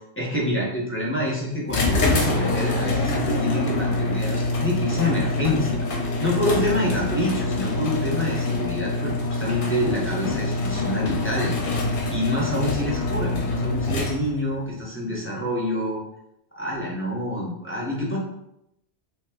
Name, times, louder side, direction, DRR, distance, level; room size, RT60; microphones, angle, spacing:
voice 1, 0.2-5.8 6.2-11.6 12.1-16.0 16.6-18.2, left 1 dB, 15° left, -5 dB, 0.6 m, -27 dB
sound 1, 1.7-14.5, left 2 dB, 60° left, 0.7 m, -25 dB
2.8 x 2.2 x 3.4 m, 0.81 s
omnidirectional pair, 1.1 m